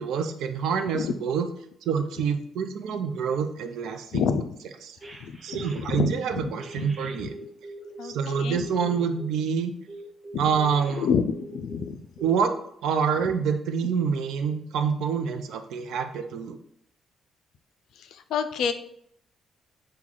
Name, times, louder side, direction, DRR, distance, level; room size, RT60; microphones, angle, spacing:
voice 1, 0.0-1.5 1.8-4.3 5.4-7.3 8.0-9.7 10.4-11.1 12.2-12.5 12.8-16.6, right 6 dB, 80° right, 7 dB, 0.4 m, -26 dB
voice 2, 4.1-4.4 5.2-6.5 6.8-6.9 7.2-7.3 8.0-8.6 10.3-10.4 10.9-12.0 18.0-18.7, left 6 dB, 80° left, 9 dB, 0.3 m, -28 dB
sound 1, 5.0-6.2 6.6-9.3 9.9-11.9 12.2-12.4, right 2 dB, 25° right, 0.7 m, -42 dB
4.6 x 2.2 x 3.7 m, 0.71 s
cardioid pair, 90°, 0 cm